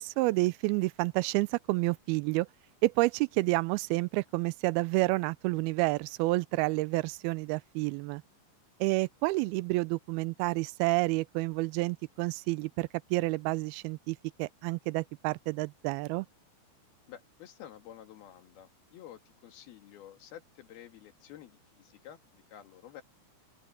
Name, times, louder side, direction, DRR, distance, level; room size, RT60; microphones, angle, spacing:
voice 1, 0.0-2.5 2.8-8.2 8.8-16.3, right 22 dB, 90° right, 2.5 m, -29 dB
voice 2, 17.1-23.0, left 11 dB, 80° left, 3.8 m, -50 dB
open air
omnidirectional pair, 4.3 m